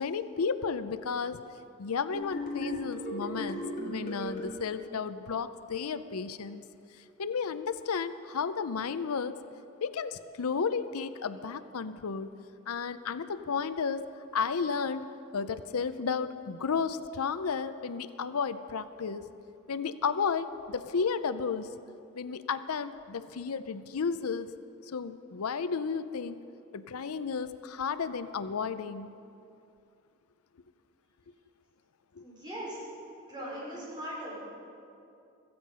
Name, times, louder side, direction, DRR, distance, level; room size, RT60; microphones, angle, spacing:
voice 1, 0.0-1.4 1.8-6.6 6.9-9.4 9.8-12.3 12.7-14.0 14.3-19.3 19.7-21.7 22.1-24.5 24.9-26.4 26.7-29.1 32.2-32.3, left 5 dB, 90° left, 13 dB, 0.6 m, -33 dB
sound 1, 2.1-4.5, left 1 dB, 40° left, 3.1 m, -36 dB
voice 2, 32.2-32.8 33.3-34.4, equal, 20° right, -6 dB, 5.1 m, -39 dB
16.5 x 14.5 x 5.6 m, 2.6 s
head